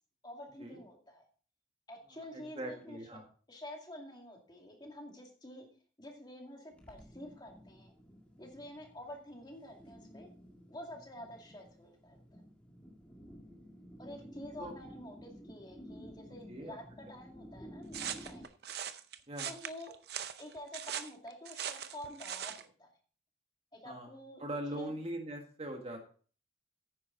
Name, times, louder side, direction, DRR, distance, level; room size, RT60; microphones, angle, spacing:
voice 1, 0.2-1.2 1.9-3.0 3.5-5.7 6.0-7.9 8.4-10.3 10.7-12.4 14.0-18.5 19.4-19.9 20.4-22.9 23.7-24.4 24.7-24.9, left 1 dB, 25° left, 1 dB, 2.3 m, -48 dB
voice 2, 2.3-3.3 14.6-14.7 16.5-16.8 19.3-19.5 23.8-24.1 24.4-26.1, right 1 dB, 35° right, 3 dB, 1.5 m, -41 dB
sound 1, 6.7-18.5, equal, 5° left, 2.0 m, -53 dB
sound 2, 17.9-22.6, right 9 dB, 60° right, 0.6 m, -41 dB
9.7 x 9.6 x 3.9 m, 0.41 s
head